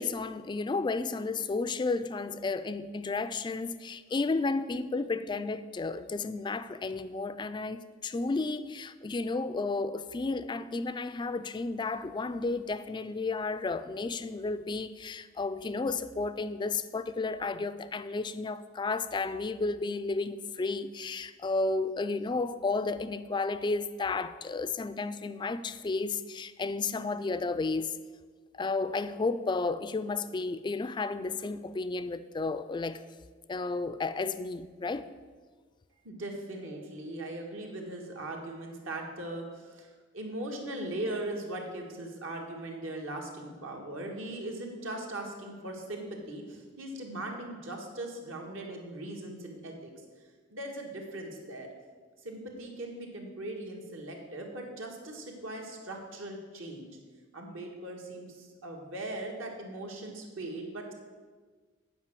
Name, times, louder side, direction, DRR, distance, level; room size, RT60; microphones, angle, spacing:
voice 1, 0.0-28.0 28.5-33.0 33.5-35.1, left 3 dB, 25° left, 0.3 m, -32 dB
voice 2, 36.0-49.9 50.5-51.7 52.2-56.9 57.3-60.9, right 1 dB, 75° right, 1.7 m, -39 dB
8.8 x 4.9 x 7.6 m
head